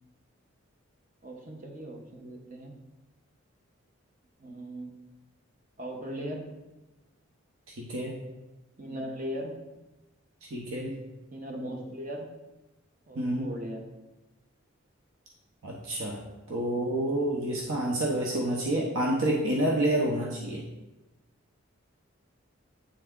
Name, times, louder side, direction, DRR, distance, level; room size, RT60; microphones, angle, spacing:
voice 1, 1.2-2.7 4.4-4.9 5.8-6.4 8.8-9.5 11.3-12.3 13.1-13.8, equal, 40° right, 1 dB, 0.8 m, -38 dB
voice 2, 7.8-8.2 10.5-10.9 13.1-13.5 15.6-16.2 16.5-20.6, right 1 dB, 75° right, -1 dB, 0.7 m, -28 dB
8.3 x 3.4 x 3.6 m, 1.0 s
head